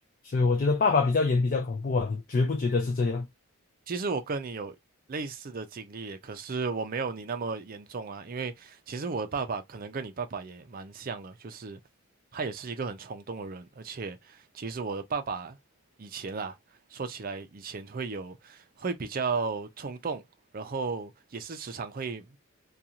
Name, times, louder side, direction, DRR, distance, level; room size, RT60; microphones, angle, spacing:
voice 1, 0.2-3.3, left 4 dB, 40° left, 0.4 m, -25 dB
voice 2, 3.9-4.8 5.1-11.8 12.3-15.6 16.0-16.6 16.9-20.2 20.5-22.4, right 4 dB, 40° right, 0.5 m, -35 dB
2.5 x 2.3 x 2.8 m
head